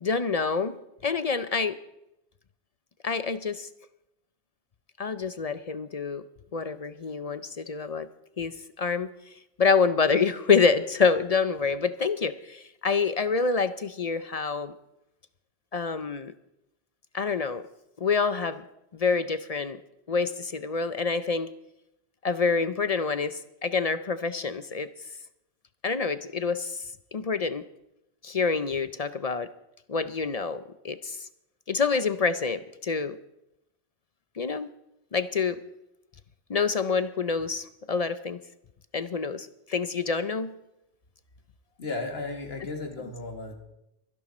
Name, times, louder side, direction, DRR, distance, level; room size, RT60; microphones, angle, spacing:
voice 1, 0.0-0.7 1.0-1.8 3.0-3.7 5.0-6.2 6.5-8.1 8.4-9.1 9.6-14.7 15.7-16.3 17.1-17.6 18.0-18.6 18.9-19.8 20.1-21.5 22.2-24.9 25.8-26.8 27.1-27.6 28.2-29.5 29.9-31.3 31.7-33.2 34.4-34.7 35.1-35.6 36.5-38.4 38.9-40.5, left 5 dB, 45° left, 13 dB, 0.6 m, -27 dB
voice 2, 41.8-43.6, left 3 dB, 70° left, 4 dB, 2.3 m, -34 dB
23.5 x 11.0 x 4.2 m, 0.85 s
omnidirectional pair, 1.1 m